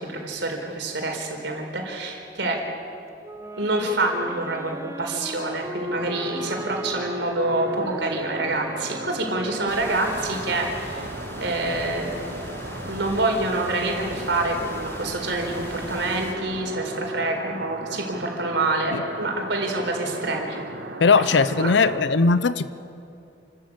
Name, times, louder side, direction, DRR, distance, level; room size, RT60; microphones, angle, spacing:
voice 1, 0.0-2.6 3.6-11.1 11.4-12.2 12.9-20.6 21.2-21.3 21.6-21.7, right 2 dB, 80° right, 2 dB, 4.3 m, -27 dB
Wind instrument woodwind instrument, 3.2-11.5, right 1 dB, 15° right, 0.9 m, -37 dB
sound 1, 5.9-22.0, right 2 dB, 65° right, 1.6 m, -37 dB
sound 2, 9.7-16.3, left 1 dB, 15° left, 2.7 m, -39 dB
voice 2, 21.0-22.7, left 4 dB, 75° left, 14 dB, 0.7 m, -19 dB
29.5 x 13.5 x 8.8 m, 2.7 s
head